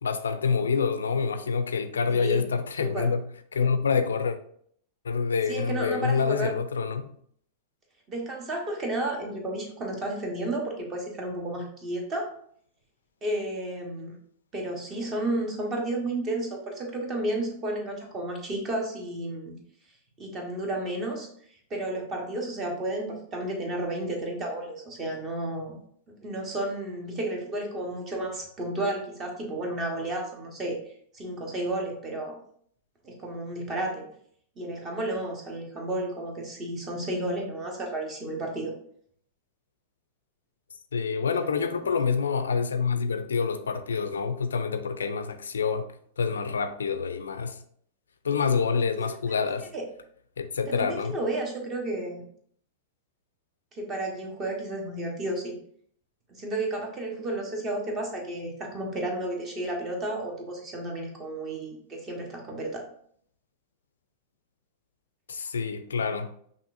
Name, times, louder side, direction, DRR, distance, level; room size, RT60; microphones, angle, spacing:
voice 1, 0.0-3.2 3.5-4.4 5.0-7.1 40.9-47.6 48.2-49.7 50.4-51.2 65.3-66.3, left 5 dB, 75° left, 0.3 m, -27 dB
voice 2, 2.1-2.5 2.8-3.1 5.5-6.6 8.1-12.3 13.2-14.2 14.5-19.5 20.2-21.3 21.7-25.8 26.2-30.8 31.1-32.4 33.0-34.0 34.6-38.7 41.3-41.9 49.7-49.8 50.7-52.2 53.8-55.5 56.3-62.8, right 1 dB, 30° right, 1.2 m, -32 dB
5.6 x 2.5 x 2.6 m
figure-of-eight pair, 95°, 0 cm